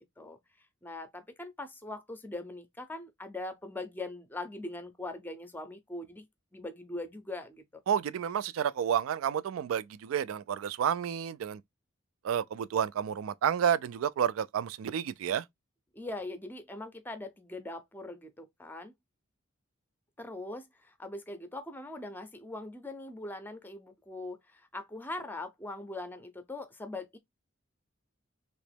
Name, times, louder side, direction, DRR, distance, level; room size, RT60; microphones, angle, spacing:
voice 1, 0.8-6.3 6.5-7.6 15.9-18.9 20.2-27.2, left 2 dB, 10° left, 0.5 m, -41 dB
voice 2, 7.9-11.6 12.2-15.4, right 8 dB, 80° right, 0.3 m, -30 dB
3.0 x 2.9 x 3.3 m
head